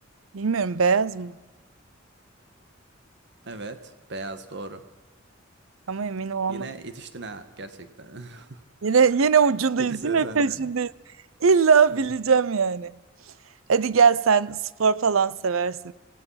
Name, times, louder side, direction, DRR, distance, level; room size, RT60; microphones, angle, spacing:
voice 1, 0.3-1.3 5.9-6.7 8.8-10.9 11.4-12.9 13.7-15.9, right 5 dB, 85° right, 0.6 m, -21 dB
voice 2, 3.4-4.8 6.5-8.6 9.8-10.7, right 2 dB, 60° right, 1.6 m, -38 dB
25.5 x 17.5 x 5.8 m
head